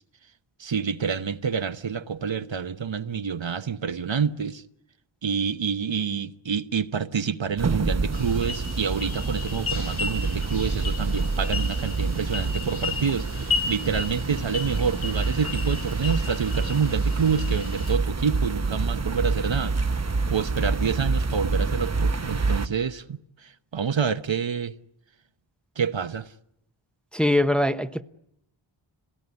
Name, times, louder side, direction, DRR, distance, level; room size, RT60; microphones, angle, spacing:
voice 1, 0.6-4.6 5.2-19.8 20.3-24.7 25.8-26.3, right 6 dB, 65° right, 1.0 m, -28 dB
sound 1, 7.6-22.7, right 3 dB, 35° right, 0.9 m, -27 dB
sound 2, 8.1-18.0, left 4 dB, 80° left, 5.5 m, -35 dB
voice 2, 27.1-28.0, left 1 dB, ahead, 0.9 m, -22 dB
26.5 x 18.0 x 9.7 m
wide cardioid pair, 70°, 48 cm